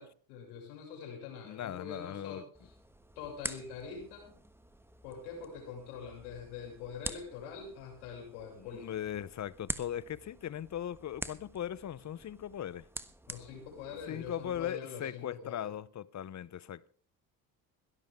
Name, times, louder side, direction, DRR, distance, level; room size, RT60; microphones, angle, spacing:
voice 1, 0.0-2.7 3.2-4.4 5.0-9.0 13.3-15.7, left 6 dB, 90° left, 7.0 m, -44 dB
voice 2, 1.4-2.4 8.6-12.9 14.1-16.9, left 10 dB, 40° left, 0.9 m, -39 dB
sound 1, 2.5-14.7, right 1 dB, 5° right, 1.3 m, -47 dB
22.0 x 13.0 x 3.7 m
supercardioid pair, 75°, 43 cm